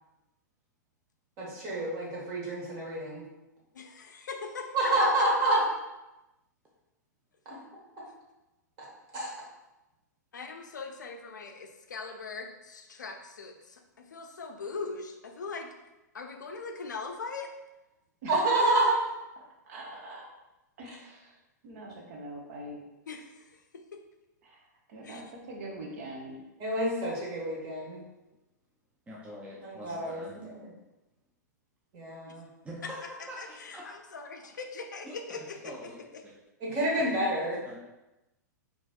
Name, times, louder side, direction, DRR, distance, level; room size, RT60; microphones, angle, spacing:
voice 1, 1.4-3.2 4.7-5.6 7.4-7.6 8.8-8.9 9.1-9.3 18.3-19.0 26.6-28.0 29.6-30.7 31.9-32.5 36.6-37.6, right 1 dB, 35° right, -4 dB, 1.2 m, -28 dB
voice 2, 3.7-4.9 10.3-15.7 16.1-17.5 23.1-24.0 25.0-25.2 32.3-32.4 32.8-32.9 33.4-35.7 36.1-36.2, left 4 dB, 75° left, 4 dB, 0.4 m, -41 dB
voice 3, 19.4-20.3 20.8-22.8 24.4-26.4, right 1 dB, 55° right, -1 dB, 0.7 m, -44 dB
voice 4, 29.1-30.3 32.6-33.8 35.0-36.3 37.0-37.1 37.6-37.8, equal, 15° right, -3 dB, 0.4 m, -45 dB
3.8 x 2.4 x 2.3 m, 0.99 s
figure-of-eight pair, 105°, 10 cm